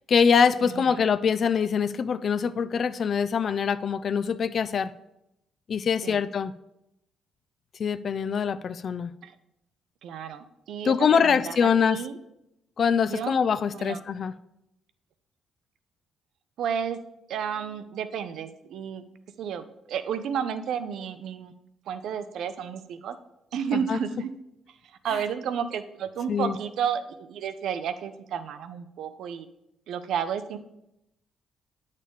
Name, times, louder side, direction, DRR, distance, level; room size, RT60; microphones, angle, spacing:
voice 1, 0.1-4.9 5.7-6.5 7.8-9.1 10.8-12.0 12.8-14.3 23.7-24.0 26.3-26.6, left 6 dB, 50° left, 14 dB, 0.3 m, -24 dB
voice 2, 0.6-1.0 6.0-6.2 9.2-9.3 10.0-12.2 13.1-13.3 13.7-14.0 16.6-17.0 17.3-19.0 19.4-21.5 21.9-23.2 23.5-24.3 24.8-29.5 29.9-30.6, right 8 dB, 75° right, 11 dB, 0.6 m, -32 dB
8.5 x 6.5 x 3.6 m, 0.85 s
cardioid pair, 90°, 0 cm